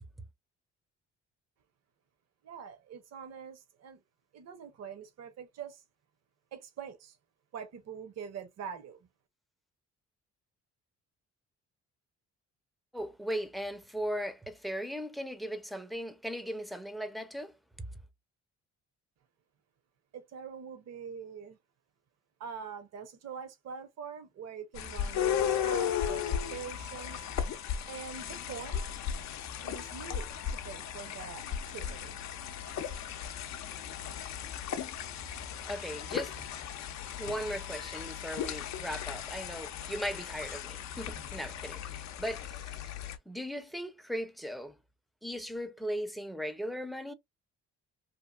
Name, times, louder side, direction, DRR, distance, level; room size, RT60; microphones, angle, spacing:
voice 1, 2.4-4.0 4.3-5.8 6.5-7.2 7.5-9.0 20.1-21.6 22.4-27.3 27.9-28.9 29.6-32.2, right 7 dB, 60° right, 0.8 m, -44 dB
voice 2, 12.9-18.0 35.7-36.5 37.2-42.9 43.3-44.8 45.2-47.1, equal, ahead, 0.5 m, -38 dB
sound 1, 24.8-43.2, left 9 dB, 65° left, 0.5 m, -36 dB
2.8 x 2.4 x 2.3 m
cardioid pair, 90°, 30 cm